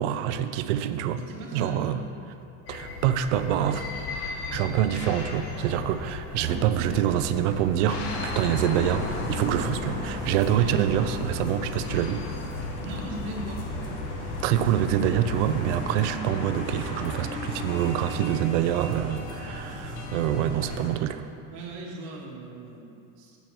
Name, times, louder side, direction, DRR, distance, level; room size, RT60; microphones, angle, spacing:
voice 1, 0.0-1.2 1.5-2.0 2.7-4.1 4.5-12.2 14.4-21.3, right 10 dB, 85° right, 11 dB, 0.6 m, -26 dB
voice 2, 1.2-1.9 6.4-6.8 10.4-11.3 12.8-13.7 21.5-23.4, right 2 dB, 55° right, -3 dB, 1.2 m, -39 dB
sound 1, 2.7-15.7, left 4 dB, 40° left, 0.8 m, -38 dB
sound 2, 3.5-11.5, left 3 dB, 65° left, 1.0 m, -44 dB
sound 3, 7.9-20.9, left 1 dB, 85° left, 1.5 m, -35 dB
7.7 x 7.0 x 4.5 m, 2.6 s
cardioid pair, 175°, 35 cm